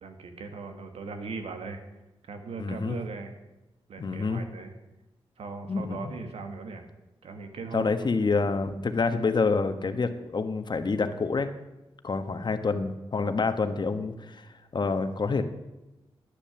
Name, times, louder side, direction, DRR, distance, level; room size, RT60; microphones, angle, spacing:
voice 1, 0.0-1.8 2.3-3.4 3.9-4.7 5.4-6.9 7.2-8.1, right 4 dB, 80° right, 6 dB, 1.6 m, -39 dB
voice 2, 2.6-3.0 4.0-4.4 5.7-6.2 7.7-11.5 12.0-15.4, left 4 dB, 50° left, 8 dB, 1.3 m, -27 dB
10.5 x 9.9 x 7.1 m, 1.0 s
cardioid pair, 65°, 10 cm